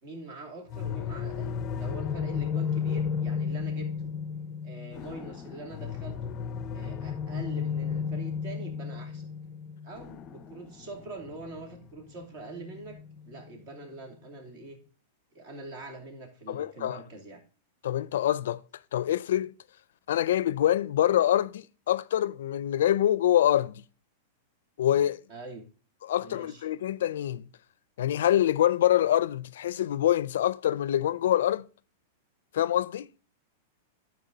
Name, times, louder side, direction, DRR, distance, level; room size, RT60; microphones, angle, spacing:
voice 1, 0.0-4.1 4.6-6.4 6.7-9.3 9.8-13.0 13.2-14.8 15.3-17.4 25.3-25.6 26.2-26.7, right 2 dB, 55° right, 2.8 m, -44 dB
sound 1, 0.7-13.5, left 6 dB, 30° left, 0.5 m, -34 dB
voice 2, 16.5-17.0 17.8-18.6 18.9-19.5 20.1-23.8 24.8-25.2 26.1-27.5 28.0-31.7 32.5-33.1, left 11 dB, 80° left, 0.4 m, -25 dB
12.0 x 4.9 x 3.9 m
supercardioid pair, 150°, 0 cm